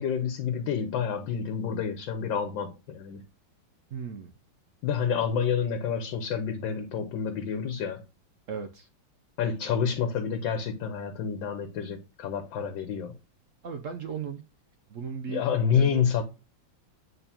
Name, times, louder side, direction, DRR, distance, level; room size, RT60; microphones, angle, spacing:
voice 1, 0.0-3.2 4.8-8.0 9.4-13.1 15.3-16.2, left 7 dB, 80° left, 1.5 m, -28 dB
voice 2, 3.9-4.3 8.5-8.9 13.6-14.4 14.9-15.4 15.7-16.0, right 6 dB, 65° right, 0.8 m, -36 dB
8.9 x 3.8 x 2.8 m
omnidirectional pair, 2.0 m